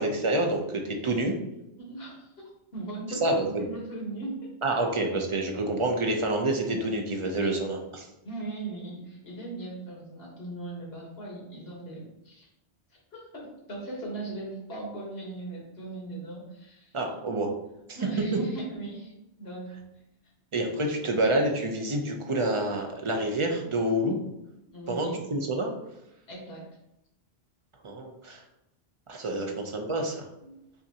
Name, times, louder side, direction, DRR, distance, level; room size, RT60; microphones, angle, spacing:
voice 1, 0.0-1.4 3.2-3.6 4.6-8.1 16.9-17.5 20.5-24.2 24.9-25.7 27.8-28.4 29.1-30.3, right 1 dB, 35° right, 2 dB, 0.5 m, -28 dB
voice 2, 1.8-4.5 7.4-7.5 8.2-12.5 13.1-16.9 17.9-19.7 24.7-25.2 26.3-26.6 30.4-30.6, right 2 dB, 75° left, -3 dB, 1.6 m, -39 dB
5.6 x 2.6 x 2.8 m, 0.88 s
omnidirectional pair, 1.1 m